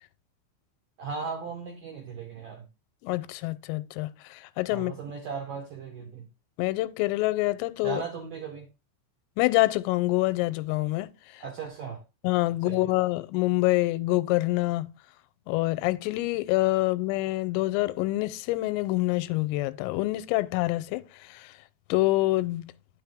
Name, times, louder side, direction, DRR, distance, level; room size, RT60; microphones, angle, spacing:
voice 1, 1.0-2.7 4.7-6.3 7.8-8.7 11.4-12.0 12.6-12.9, right 5 dB, 75° right, 2.0 m, -37 dB
voice 2, 3.0-4.9 6.6-8.0 9.4-11.4 12.2-14.9 15.5-21.5 21.9-22.7, left 19 dB, 90° left, 3.2 m, -26 dB
10.0 x 6.5 x 3.4 m
omnidirectional pair, 5.7 m